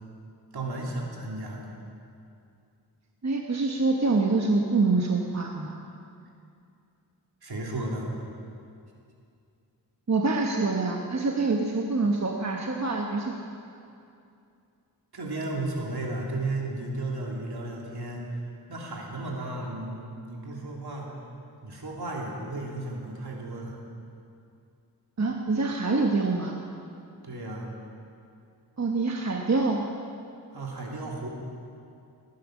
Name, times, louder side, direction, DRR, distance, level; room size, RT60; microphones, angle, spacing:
voice 1, 0.5-1.7 7.4-8.1 15.1-21.1 21.6-23.8 27.2-27.7 30.5-31.3, right 2 dB, 65° right, -2 dB, 3.0 m, -34 dB
voice 2, 3.2-5.7 10.1-13.3 25.2-26.6 28.8-29.9, right 3 dB, 40° right, 1 dB, 1.1 m, -25 dB
19.5 x 10.0 x 6.3 m, 2.5 s
wide cardioid pair, 85°, 40 cm